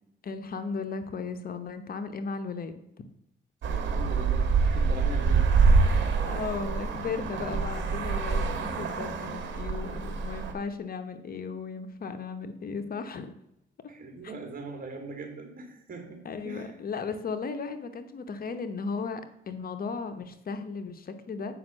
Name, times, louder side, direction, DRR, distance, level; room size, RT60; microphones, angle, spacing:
voice 1, 0.2-2.8 6.3-13.4 14.2-14.3 16.2-21.5, left 5 dB, 50° left, 9 dB, 0.9 m, -36 dB
Traffic noise roadway noise, 3.6-10.5, right 4 dB, 65° right, 1.7 m, -26 dB
voice 2, 3.9-6.4 13.9-16.7, right 3 dB, 45° right, 4 dB, 2.7 m, -41 dB
8.0 x 5.4 x 6.3 m, 0.82 s
cardioid pair, 90°, 20 cm